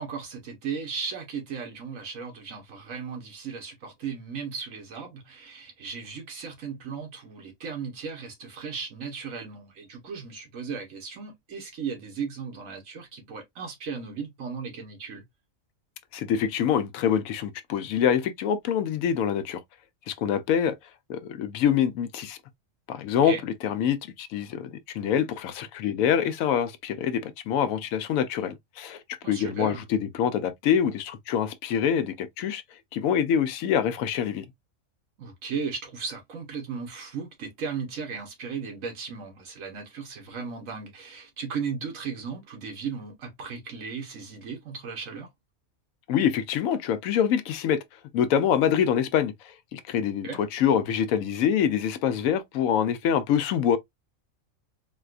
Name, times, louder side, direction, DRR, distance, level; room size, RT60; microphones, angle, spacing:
voice 1, 0.0-15.2 23.2-23.4 29.2-29.8 35.2-45.3 50.2-50.5, right 5 dB, 75° right, 1.5 m, -36 dB
voice 2, 16.1-19.6 20.1-20.7 21.1-22.4 22.9-32.6 32.9-34.4 46.1-47.8 48.1-49.3 49.7-53.8, left 8 dB, 90° left, 1.0 m, -25 dB
4.0 x 2.3 x 2.3 m
omnidirectional pair, 1.4 m